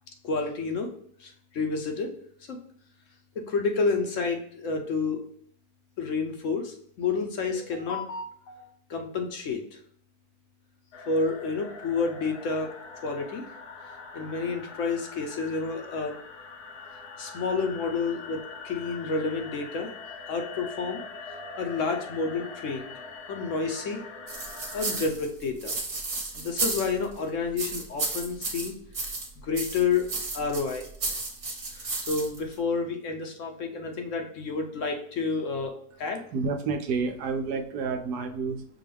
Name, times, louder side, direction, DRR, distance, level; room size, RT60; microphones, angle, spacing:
voice 1, 0.2-0.9 1.2-2.1 2.5-2.6 3.5-5.2 6.0-8.6 8.9-9.8 11.1-12.7 13.0-13.4 13.9-16.1 17.2-19.9 20.3-21.0 21.6-22.9 23.3-24.0 24.7-25.7 26.3-28.7 29.4-30.0 30.3-30.9 31.7-35.7 36.0-36.2, left 4 dB, 60° left, 3 dB, 1.0 m, -29 dB
sound 1, 10.9-25.0, left 4 dB, 80° left, 1.3 m, -43 dB
sound 2, 24.3-27.2 27.6-29.3 29.5-32.5, right 3 dB, 50° right, 1.3 m, -33 dB
voice 2, 36.3-38.7, right 4 dB, 85° right, 6 dB, 1.2 m, -29 dB
6.0 x 2.4 x 3.3 m, 0.64 s
omnidirectional pair, 1.6 m